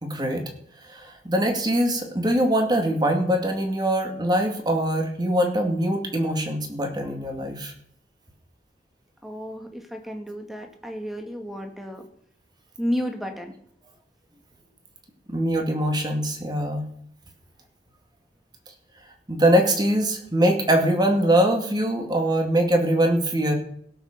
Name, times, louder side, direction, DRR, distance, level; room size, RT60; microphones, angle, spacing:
voice 1, 0.0-0.4 0.9-7.7 15.3-16.9 19.3-23.5, right 1 dB, 25° right, 3 dB, 2.2 m, -22 dB
voice 2, 9.2-12.1 12.8-13.5, equal, ahead, 4 dB, 1.7 m, -32 dB
17.0 x 6.4 x 6.6 m, 0.68 s
head